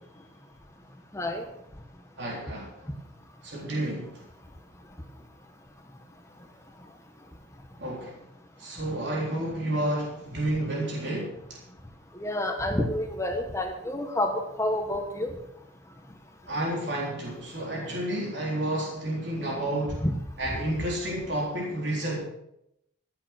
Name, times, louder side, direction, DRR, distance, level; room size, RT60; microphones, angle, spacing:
voice 1, 2.2-2.7 3.4-4.1 7.8-8.1 8.6-11.6 16.5-20.0 20.4-22.2, right 1 dB, 55° right, -3 dB, 3.9 m, -30 dB
voice 2, 12.2-15.3 20.0-20.1, left 1 dB, 15° left, 4 dB, 1.1 m, -28 dB
15.5 x 8.9 x 6.1 m, 0.80 s
head